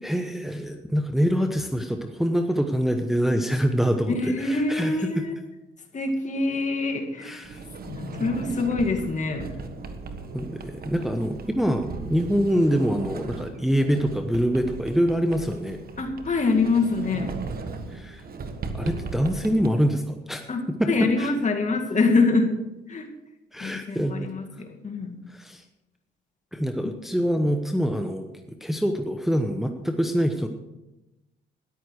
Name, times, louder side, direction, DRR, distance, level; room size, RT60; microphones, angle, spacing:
voice 1, 0.0-4.1 4.4-5.3 7.2-7.6 10.3-15.8 17.9-18.2 18.7-20.4 20.8-21.3 23.5-24.3 25.3-25.6 26.5-28.3 28.6-30.5, equal, ahead, 5 dB, 1.0 m, -25 dB
voice 2, 4.1-5.4 5.9-7.4 7.8-9.5 16.0-17.3 20.5-22.5 22.9-23.1 23.6-25.2, left 3 dB, 40° left, 4 dB, 2.2 m, -25 dB
Sliding door, 7.4-19.7, right 4 dB, 50° right, 1.5 m, -37 dB
14.0 x 11.0 x 4.8 m, 0.98 s
cardioid pair, 90°, 20 cm